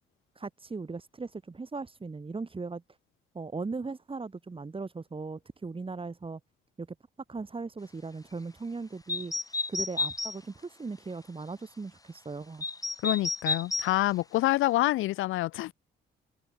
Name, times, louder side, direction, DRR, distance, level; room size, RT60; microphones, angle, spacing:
voice 1, 0.4-2.8 3.3-6.4 6.8-6.9 7.3-12.7, right 4 dB, 25° right, 7.2 m, -38 dB
Great Tit At Dawn (Kohlmeise), 9.1-10.4 12.6-13.9, left 2 dB, 15° left, 3.1 m, -31 dB
voice 2, 13.0-15.7, left 16 dB, 90° left, 1.0 m, -27 dB
cardioid pair, 90°, 20 cm